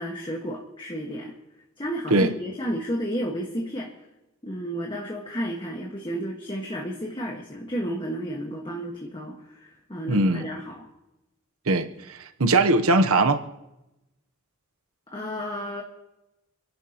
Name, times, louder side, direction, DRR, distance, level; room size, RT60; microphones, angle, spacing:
voice 1, 0.0-1.3 1.8-3.9 4.4-10.9 15.1-15.8, equal, 20° left, -1 dB, 1.6 m, -32 dB
voice 2, 10.1-10.5 11.7-13.4, right 2 dB, 70° right, 7 dB, 1.0 m, -21 dB
30.0 x 11.5 x 3.0 m, 0.93 s
head